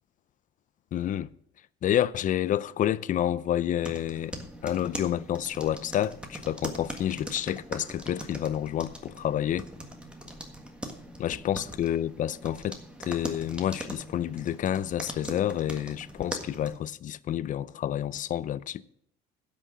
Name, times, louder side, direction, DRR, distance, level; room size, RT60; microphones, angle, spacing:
voice 1, 0.9-1.3 1.8-4.4 4.6-9.7 11.2-12.8 13.1-18.8, left 11 dB, 50° left, 0.5 m, -29 dB
sound 1, 3.8-16.8, equal, 5° right, 1.6 m, -41 dB
11.0 x 6.3 x 7.4 m
cardioid pair, 110°, 17 cm